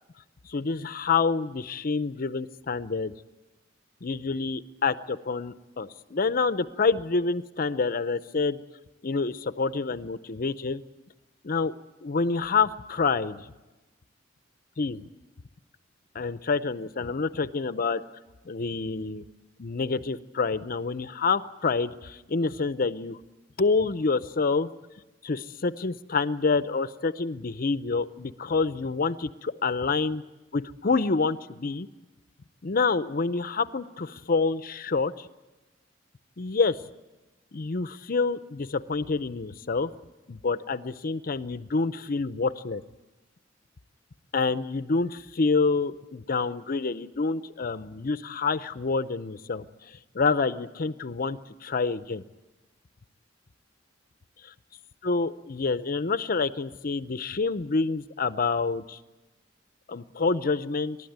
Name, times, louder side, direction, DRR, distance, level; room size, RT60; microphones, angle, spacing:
voice 1, 0.4-3.1 4.0-8.6 9.0-10.8 11.4-11.7 12.0-13.5 14.8-15.1 16.1-18.0 18.5-19.2 19.6-23.2 23.6-24.7 25.2-30.2 30.5-31.9 32.6-35.3 36.4-36.8 37.5-39.9 40.3-42.8 44.3-52.2 55.0-59.0 59.9-61.0, left 4 dB, 50° left, 13 dB, 0.6 m, -27 dB
28.0 x 12.5 x 9.3 m, 1.1 s
head